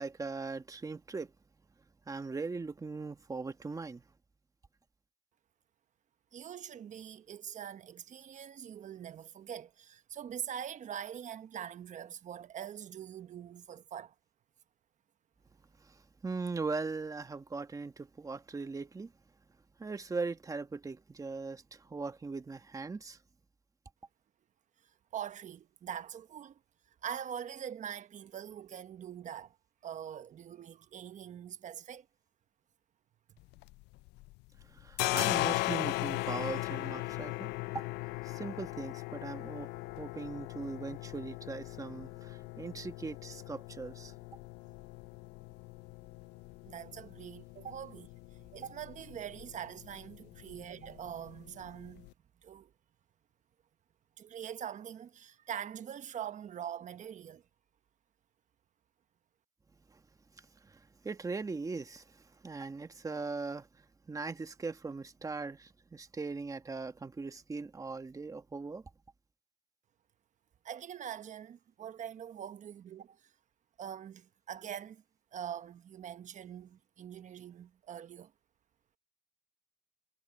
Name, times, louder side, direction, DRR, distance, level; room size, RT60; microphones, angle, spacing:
voice 1, 0.0-1.3 2.1-4.0 15.8-19.1 19.8-23.2 34.6-37.9 38.2-44.1 59.9-60.0 60.4-68.9, right 4 dB, 20° right, 1.4 m, -40 dB
voice 2, 6.3-14.1 25.1-26.6 27.0-29.6 29.8-32.1 46.6-48.1 48.5-52.1 52.4-52.7 54.2-57.4 70.6-73.3 73.8-75.0 75.3-78.3, right 9 dB, 45° right, 1.2 m, -43 dB
sound 1, 33.4-34.3 34.6-52.1, left 20 dB, 90° left, 0.5 m, -39 dB
cardioid pair, 110°, 17 cm